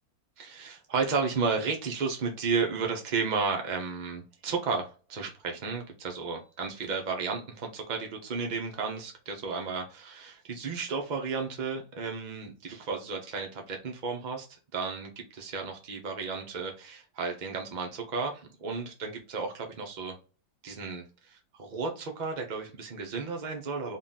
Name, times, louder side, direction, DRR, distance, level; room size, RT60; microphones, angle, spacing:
voice 1, 0.4-14.5 14.7-20.1 20.6-24.0, right 4 dB, 75° right, 2 dB, 0.4 m, -33 dB
3.7 x 2.3 x 3.9 m, 0.34 s
omnidirectional pair, 1.8 m